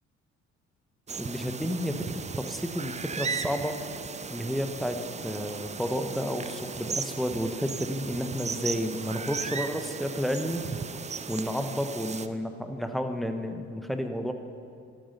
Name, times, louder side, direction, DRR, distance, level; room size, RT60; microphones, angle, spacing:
sound 1, 1.1-12.3, right 5 dB, 20° right, 0.6 m, -36 dB
voice 1, 1.2-3.8 4.3-5.0 5.2-10.6 11.3-14.3, equal, ahead, 6 dB, 1.2 m, -31 dB
14.0 x 9.1 x 5.6 m, 2.5 s
hypercardioid pair, 50°, 34 cm